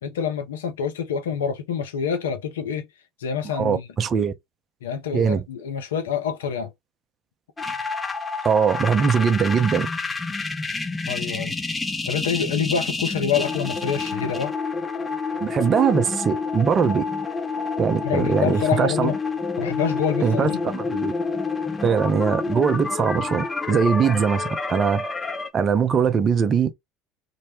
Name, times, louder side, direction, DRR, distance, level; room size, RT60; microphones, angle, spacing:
voice 1, 0.0-2.9 3.2-3.9 4.8-6.7 11.1-11.6 12.1-14.5 18.0-19.2 19.6-20.7, left 7 dB, 75° left, 0.5 m, -26 dB
voice 2, 3.5-4.3 5.1-5.4 8.4-9.9 15.4-17.0 17.8-19.1 20.2-21.1 21.8-25.1 25.5-26.7, right 6 dB, 40° right, 0.5 m, -21 dB
sound 1, 7.6-25.5, left 4 dB, 15° left, 0.7 m, -28 dB
2.1 x 2.1 x 3.0 m
hypercardioid pair, 65°, 0 cm